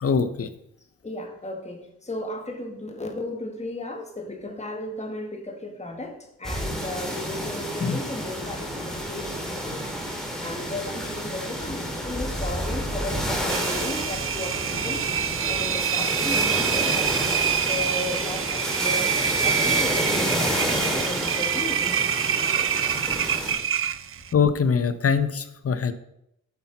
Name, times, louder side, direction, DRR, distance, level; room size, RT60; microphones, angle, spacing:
voice 1, 0.0-0.5 7.8-8.0 24.3-25.9, left 6 dB, 50° left, 12 dB, 0.8 m, -23 dB
voice 2, 1.0-9.9 10.4-15.1 15.4-23.6, left 2 dB, 20° left, 2 dB, 1.8 m, -35 dB
sound 1, 6.4-23.5, equal, ahead, 2.4 m, -30 dB
Engine, 13.5-24.3, right 8 dB, 45° right, 0.5 m, -26 dB
8.6 x 5.9 x 4.1 m, 0.79 s
cardioid pair, 55°, 31 cm